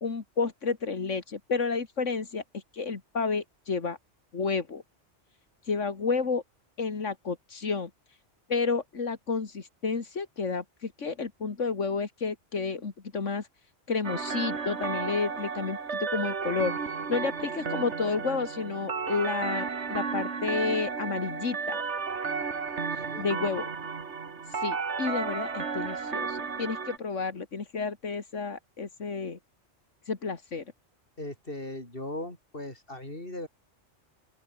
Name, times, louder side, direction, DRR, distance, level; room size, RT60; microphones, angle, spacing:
voice 1, 0.0-4.0 4.3-4.8 5.7-6.4 6.8-7.9 8.5-13.5 13.9-16.7 17.1-21.8 23.2-23.7 24.5-29.4 30.1-30.6, left 4 dB, 85° left, 2.5 m, -31 dB
sound 1, 14.0-27.0, right 5 dB, 70° right, 2.0 m, -33 dB
voice 2, 22.8-23.3 31.2-33.5, left 1 dB, 50° left, 6.7 m, -39 dB
open air
omnidirectional pair, 1.2 m